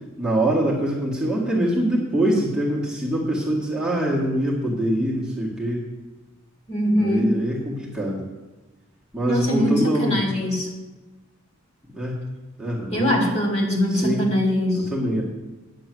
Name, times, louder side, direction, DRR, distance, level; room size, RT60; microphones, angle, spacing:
voice 1, 0.2-5.8 7.0-8.2 9.1-10.2 11.9-12.2 12.6-13.2 13.9-14.2 14.7-15.2, right 1 dB, 5° right, -6 dB, 1.7 m, -24 dB
voice 2, 6.7-7.4 9.2-10.7 12.9-14.9, equal, 30° left, -1 dB, 2.3 m, -22 dB
9.5 x 6.1 x 7.7 m, 1.1 s
head